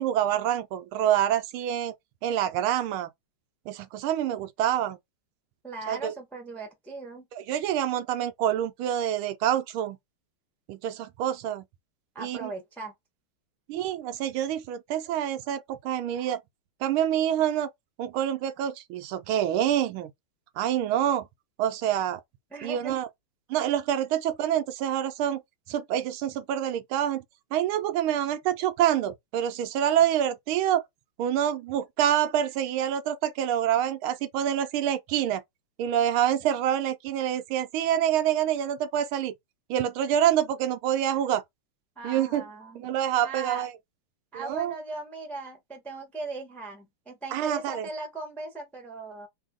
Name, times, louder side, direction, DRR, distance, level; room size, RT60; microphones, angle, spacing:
voice 1, 0.0-1.9 2.2-3.1 3.7-5.0 5.9-6.1 7.5-10.0 10.7-11.6 12.2-12.5 13.7-16.4 16.8-17.7 18.0-20.1 20.6-21.2 21.6-22.2 22.6-23.1 23.5-25.4 25.7-27.2 27.5-30.8 31.2-35.4 35.8-39.3 39.7-41.4 42.0-42.4 42.8-43.7 44.3-44.7 47.3-47.9, right 10 dB, 80° right, 1.4 m, -26 dB
voice 2, 5.6-7.3 12.1-12.9 22.5-23.0 42.0-42.8 43.2-43.7 44.3-49.3, right 3 dB, ahead, 0.6 m, -38 dB
3.4 x 2.7 x 3.7 m
omnidirectional pair, 2.4 m